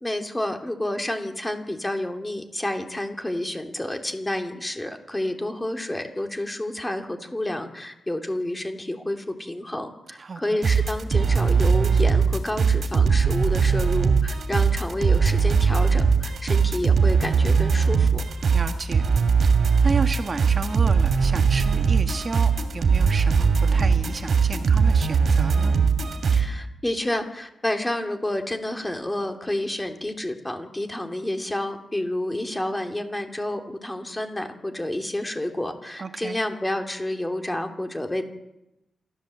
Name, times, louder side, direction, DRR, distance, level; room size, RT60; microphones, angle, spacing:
voice 1, 0.0-18.2 26.3-38.2, left 1 dB, 15° left, 4 dB, 2.9 m, -29 dB
voice 2, 10.2-10.6 18.5-19.0 19.5-25.8 36.0-36.4, right 4 dB, 40° right, 7 dB, 1.5 m, -32 dB
sound 1, 10.6-26.5, right 5 dB, 60° right, 2.8 m, -20 dB
27.5 x 13.5 x 7.8 m, 0.90 s
cardioid pair, 95°, 0 cm